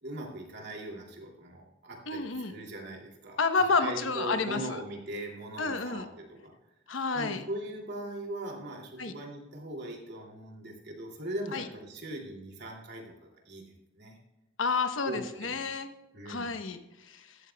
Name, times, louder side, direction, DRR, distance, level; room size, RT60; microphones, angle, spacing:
voice 1, 0.0-3.4 3.8-6.5 7.1-13.6 14.0-14.2 15.0-15.6 16.1-16.6, right 1 dB, 60° right, 0 dB, 2.6 m, -40 dB
voice 2, 2.1-2.6 3.4-4.8 5.6-6.1 6.9-7.4 9.0-9.1 11.5-11.7 14.6-15.9 16.3-17.4, left 4 dB, 85° left, 8 dB, 1.0 m, -30 dB
15.0 x 12.5 x 2.3 m, 0.99 s
head